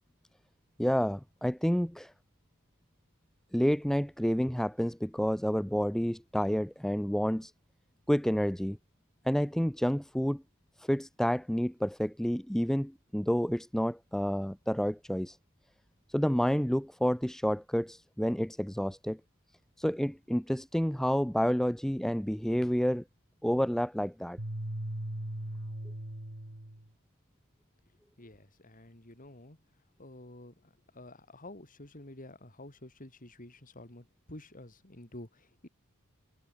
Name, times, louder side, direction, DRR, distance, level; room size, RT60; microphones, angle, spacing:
voice 1, 0.8-2.1 3.5-7.5 8.1-8.8 9.2-10.4 10.8-15.4 16.1-19.2 19.8-23.0 23.4-24.4, equal, ahead, 0.6 m, -29 dB
sound 1, 24.4-26.9, right 1 dB, 65° right, 2.8 m, -38 dB
voice 2, 28.2-29.6 30.0-35.7, left 1 dB, 40° left, 3.5 m, -50 dB
head